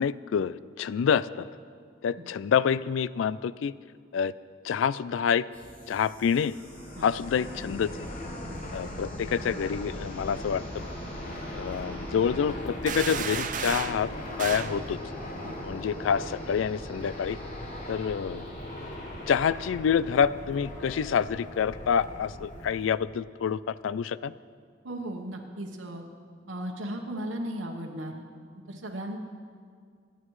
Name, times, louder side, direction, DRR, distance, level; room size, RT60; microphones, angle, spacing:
voice 1, 0.0-1.5 2.0-3.7 4.1-4.3 4.6-5.4 5.9-6.5 7.0-7.9 8.7-10.6 11.5-14.1 14.4-15.0 15.6-17.4 17.9-18.4 19.3-24.3, left 7 dB, 90° left, 17 dB, 0.3 m, -27 dB
sound 1, 5.5-22.3, equal, 10° left, 3.3 m, -52 dB
Fixed-wing aircraft airplane, 6.5-22.9, left 1 dB, 40° left, 1.3 m, -39 dB
sound 2, 12.9-14.0 14.4-14.8, right 7 dB, 45° right, 0.5 m, -32 dB
voice 2, 24.8-26.0 26.5-28.2 28.7-29.2, right 1 dB, 90° right, 1 dB, 1.1 m, -36 dB
25.5 x 9.4 x 3.2 m, 2.1 s
head